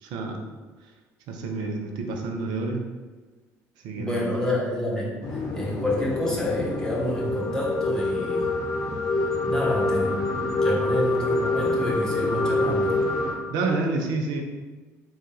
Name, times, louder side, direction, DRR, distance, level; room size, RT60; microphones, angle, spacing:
voice 1, 0.0-0.4 1.3-2.9 3.8-4.3 13.5-14.4, right 3 dB, 70° right, 2 dB, 0.6 m, -28 dB
voice 2, 4.0-5.2 5.5-8.6 9.4-12.9, left 1 dB, 10° left, -4 dB, 1.5 m, -28 dB
sound 1, 5.2-13.3, left 2 dB, 50° left, 0.8 m, -26 dB
3.7 x 2.5 x 4.0 m, 1.2 s
hypercardioid pair, 50°, 8 cm